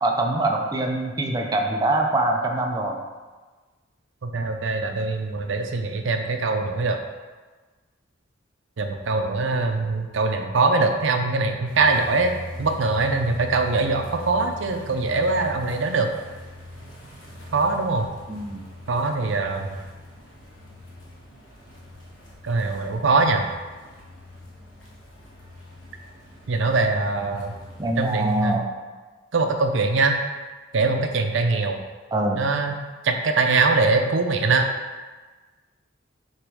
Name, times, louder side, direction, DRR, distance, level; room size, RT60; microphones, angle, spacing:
voice 1, 0.0-3.0 18.3-18.6 27.8-28.7 32.1-32.4, right 2 dB, 20° right, 1 dB, 0.5 m, -24 dB
voice 2, 4.2-7.0 8.8-12.3 12.6-16.1 17.5-18.1 18.9-19.8 22.4-23.4 26.5-27.6 28.0-28.6 29.3-30.2 30.7-31.8 32.4-32.8 33.0-34.7, right 3 dB, 70° right, 5 dB, 0.5 m, -22 dB
sound 1, 11.6-28.5, left 1 dB, 80° left, 1.4 m, -42 dB
6.5 x 3.0 x 4.8 m, 1.3 s
head